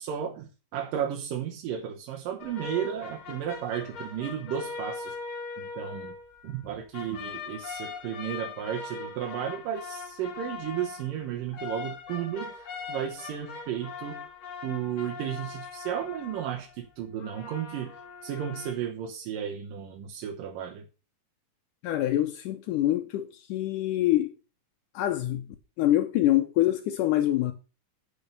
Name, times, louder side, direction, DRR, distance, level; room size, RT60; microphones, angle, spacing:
voice 1, 0.0-5.1 5.6-6.2 6.4-14.2 14.6-17.9 18.2-20.9, right 9 dB, 90° right, 2.8 m, -34 dB
sound 1, 2.4-6.7 6.9-16.8 17.2-18.7, left 5 dB, 45° left, 2.1 m, -41 dB
voice 2, 21.8-24.3 24.9-25.5 25.8-27.5, left 14 dB, 75° left, 2.3 m, -25 dB
8.8 x 5.6 x 6.6 m
omnidirectional pair, 3.8 m